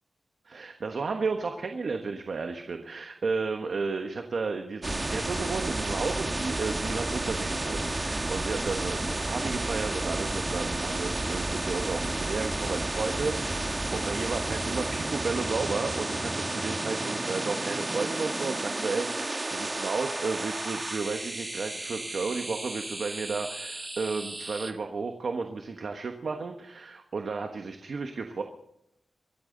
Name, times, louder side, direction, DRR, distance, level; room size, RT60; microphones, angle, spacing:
voice 1, 0.4-28.4, right 4 dB, 65° right, 5 dB, 1.2 m, -33 dB
sound 1, 4.8-24.7, right 2 dB, 25° right, 1.5 m, -32 dB
24.5 x 13.5 x 3.9 m, 0.82 s
wide cardioid pair, 135°, 0 cm